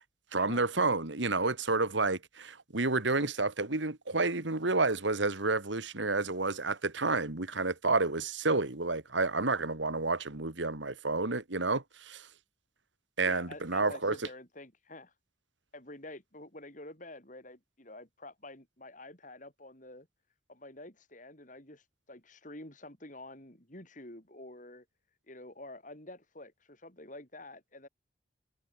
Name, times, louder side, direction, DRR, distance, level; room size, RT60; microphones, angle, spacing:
voice 1, 0.3-12.3 13.2-14.2, right 3 dB, 80° right, 2.2 m, -30 dB
voice 2, 13.3-15.1 15.7-20.1 20.5-24.8 25.3-27.9, left 2 dB, 45° left, 6.5 m, -48 dB
head